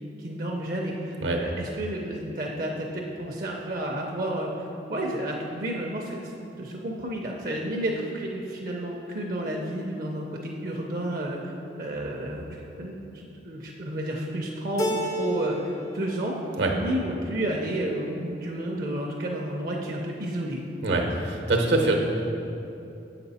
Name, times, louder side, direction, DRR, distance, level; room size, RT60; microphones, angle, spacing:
voice 1, 0.2-1.1 1.4-6.3 6.6-11.5 11.8-16.4 16.7-20.6 20.9-21.0, right 1 dB, 50° right, 0 dB, 0.5 m, -31 dB
Keyboard (musical), 14.8-15.9 16.2-17.0, equal, 15° left, 0.3 m, -31 dB
voice 2, 20.8-21.9, right 2 dB, 75° right, 1 dB, 0.8 m, -24 dB
7.2 x 5.9 x 4.1 m, 2.8 s
head